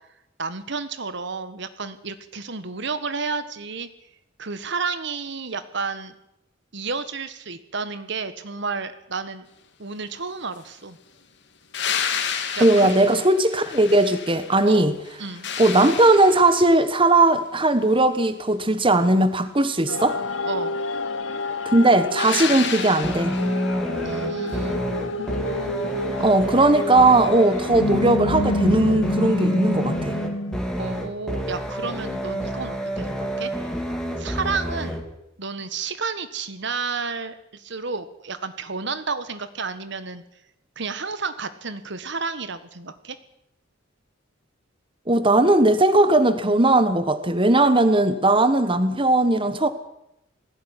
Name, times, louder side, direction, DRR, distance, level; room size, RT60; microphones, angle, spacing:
voice 1, 0.4-3.9 4.4-6.1 6.7-9.5 9.8-11.0 12.6-13.0 14.6-14.9 15.2-15.6 20.4-20.8 24.0-24.8 30.8-33.5 34.2-35.0 35.4-40.2 40.7-43.2, right 4 dB, 65° right, 12 dB, 1.5 m, -31 dB
sound 1, 11.7-14.6 15.0-16.8 22.2-23.6 26.2-26.3, left 7 dB, 60° left, 2.7 m, -30 dB
voice 2, 12.6-14.9 15.6-20.2 21.6-23.4 26.2-30.2 45.1-49.7, right 2 dB, 25° right, 11 dB, 1.4 m, -18 dB
sound 2, 19.9-30.6, left 2 dB, 90° left, 1.5 m, -28 dB
sound 3, 23.0-35.0, equal, 5° left, 3.1 m, -28 dB
19.5 x 16.5 x 10.0 m, 0.83 s
head